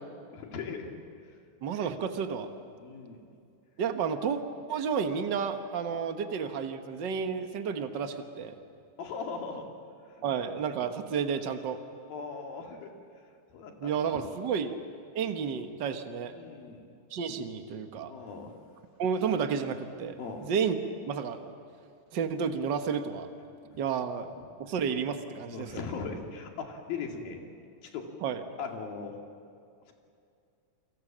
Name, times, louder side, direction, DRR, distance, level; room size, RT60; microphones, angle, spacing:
voice 1, 0.3-0.9 2.8-3.2 5.9-6.0 9.0-9.7 12.1-12.9 13.5-14.3 15.2-15.3 16.3-16.9 18.1-18.5 20.2-20.5 25.5-27.4 27.8-28.1 28.6-29.2, left 5 dB, 90° left, 2 dB, 4.2 m, -39 dB
voice 2, 1.6-2.5 3.8-4.4 4.7-8.5 10.2-11.8 13.8-14.8 15.1-16.3 17.1-18.1 19.0-20.8 21.0-21.4 22.1-23.3 23.8-24.3 24.6-25.8 28.2-28.4, right 6 dB, 65° right, 7 dB, 1.1 m, -31 dB
29.0 x 24.0 x 7.4 m, 2.4 s
omnidirectional pair, 4.1 m